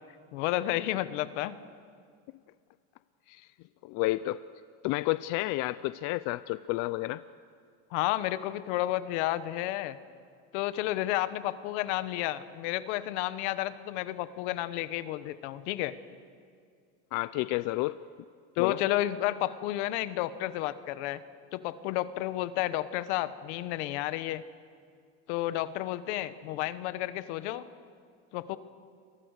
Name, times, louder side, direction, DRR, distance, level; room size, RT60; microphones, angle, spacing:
voice 1, 0.3-1.6 7.9-10.0 10.5-15.9 18.6-21.2 21.5-24.4 25.3-27.7 28.3-28.6, left 15 dB, 90° left, 13 dB, 1.3 m, -31 dB
voice 2, 3.8-4.4 4.8-7.2 17.1-18.0 18.6-18.8, left 18 dB, 65° left, 15 dB, 0.6 m, -30 dB
29.0 x 24.0 x 6.6 m, 2.2 s
cardioid pair, 130°, 34 cm